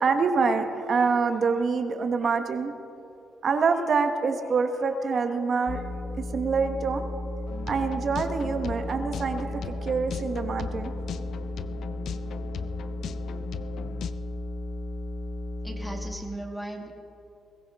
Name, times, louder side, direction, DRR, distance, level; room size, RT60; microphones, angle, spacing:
voice 1, 0.0-2.7 3.4-5.8 6.2-7.1 7.7-10.9, right 5 dB, 50° right, 7 dB, 1.2 m, -26 dB
sound 1, 5.7-16.2, left 1 dB, 40° left, 1.1 m, -34 dB
sound 2, 7.5-14.1, left 9 dB, 70° left, 0.5 m, -39 dB
voice 2, 15.6-16.9, right 1 dB, 5° left, 2 dB, 2.2 m, -37 dB
21.5 x 15.0 x 3.6 m, 2.7 s
cardioid pair, 90°, 0 cm